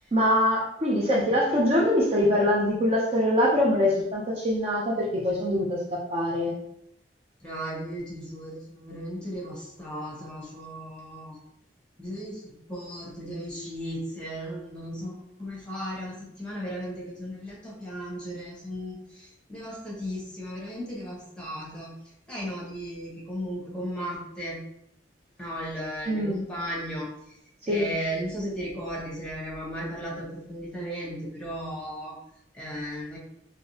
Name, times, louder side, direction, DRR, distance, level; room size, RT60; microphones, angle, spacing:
voice 1, 0.1-6.5 26.1-26.4 27.7-27.9, left 1 dB, 35° right, -4 dB, 0.5 m, -23 dB
voice 2, 7.4-11.4 12.0-15.1 15.4-21.9 22.3-24.6 25.4-27.3 27.7-32.2 32.5-33.2, equal, 5° left, -4 dB, 1.1 m, -35 dB
3.6 x 2.7 x 2.7 m, 0.77 s
head